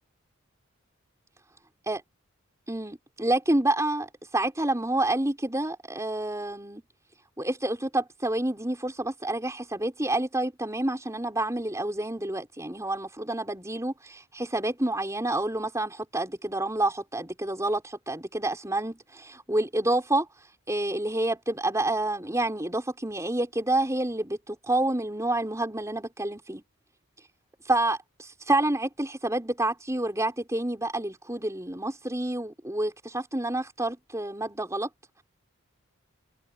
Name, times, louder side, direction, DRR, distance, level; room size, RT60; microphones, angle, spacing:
voice 1, 2.7-4.1 4.3-6.8 7.4-20.3 20.7-26.6 27.6-34.9, right 1 dB, 15° right, 5.1 m, -28 dB
head